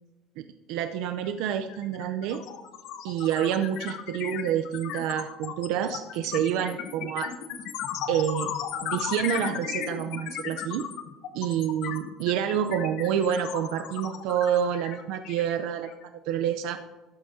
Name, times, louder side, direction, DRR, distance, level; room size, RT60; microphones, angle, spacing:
voice 1, 0.4-2.4 3.0-7.3 8.1-8.5 8.8-10.9 11.3-15.9 16.3-16.8, right 9 dB, 70° right, 8 dB, 0.5 m, -28 dB
sound 1, 1.2-1.4 1.7-16.0, left 9 dB, 60° left, 1.1 m, -35 dB
12.5 x 12.0 x 2.7 m, 1.2 s
cardioid pair, 155°, 0 cm